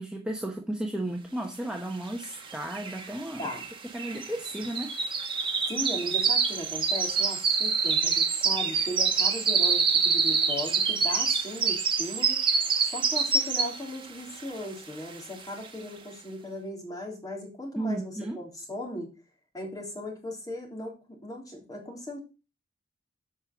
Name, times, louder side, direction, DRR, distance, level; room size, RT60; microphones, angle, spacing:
voice 1, 0.0-3.5 3.9-5.0 17.8-18.4, right 1 dB, 5° right, 1.0 m, -34 dB
sound 1, 2.2-2.3 2.5-14.0 14.4-14.7 15.1-15.2, right 5 dB, 25° right, 1.6 m, -26 dB
voice 2, 5.7-12.4 12.8-19.1 19.5-22.2, left 1 dB, 20° left, 3.3 m, -37 dB
8.5 x 5.6 x 6.0 m
head